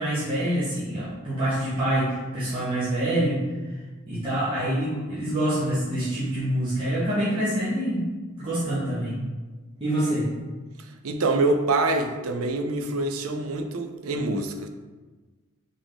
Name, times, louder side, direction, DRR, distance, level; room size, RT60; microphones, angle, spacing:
voice 1, 0.0-3.4 4.1-8.1 8.4-9.2 9.8-10.3, right 1 dB, 25° right, -11 dB, 1.2 m, -26 dB
voice 2, 11.0-14.7, right 2 dB, 90° right, 6 dB, 0.5 m, -25 dB
3.6 x 3.5 x 3.9 m, 1.3 s
head